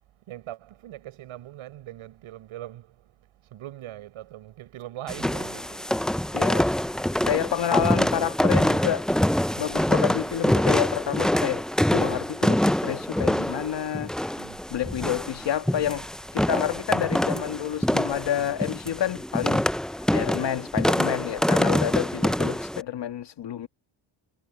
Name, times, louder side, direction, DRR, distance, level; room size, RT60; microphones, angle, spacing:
voice 1, 0.2-6.3 14.4-14.7 15.8-16.1, right 14 dB, 85° right, 5.5 m, -42 dB
sound 1, 5.1-22.8, equal, ahead, 0.4 m, -25 dB
voice 2, 6.3-6.7 7.2-9.1 9.6-11.7 11.9-14.4 14.7-16.0 16.3-23.7, left 10 dB, 60° left, 2.1 m, -29 dB
cardioid pair, 100°, 48 cm